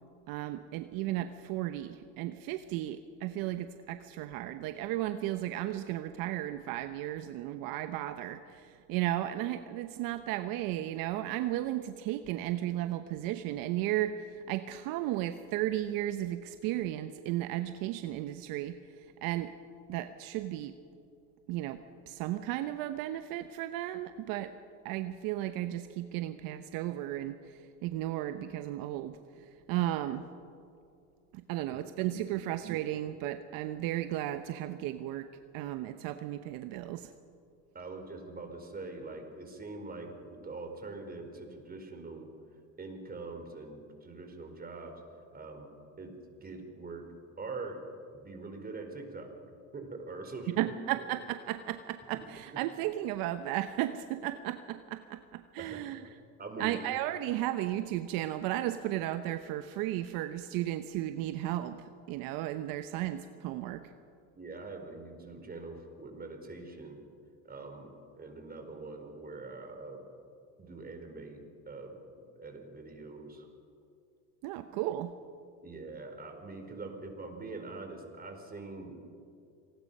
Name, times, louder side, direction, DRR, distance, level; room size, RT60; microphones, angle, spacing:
voice 1, 0.3-19.5 19.9-20.7 21.5-24.5 24.8-30.3 31.3-35.3 35.5-37.1 50.6-56.0 56.6-63.8 74.4-75.1, right 13 dB, 65° right, 9 dB, 1.0 m, -34 dB
voice 2, 31.6-32.4 37.7-42.3 42.8-45.0 45.3-45.7 46.0-47.1 47.4-47.8 48.1-50.7 52.1-52.2 55.6-55.9 56.4-56.8 64.4-67.0 67.4-70.0 70.6-72.0 72.4-73.5 75.6-79.1, right 3 dB, 25° right, 4 dB, 4.4 m, -44 dB
27.0 x 19.0 x 5.5 m, 2.5 s
supercardioid pair, 95°, 37 cm